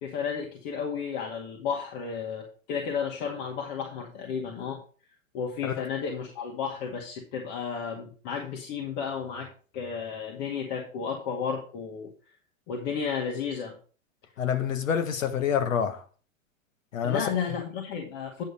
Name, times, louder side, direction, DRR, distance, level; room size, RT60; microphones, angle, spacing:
voice 1, 0.0-4.8 5.3-12.1 12.7-13.8 17.0-18.4, left 6 dB, 45° left, 2.1 m, -33 dB
voice 2, 14.4-16.0 16.9-17.3, left 8 dB, 75° left, 1.6 m, -27 dB
9.5 x 5.3 x 5.3 m
hypercardioid pair, 110°, 40 cm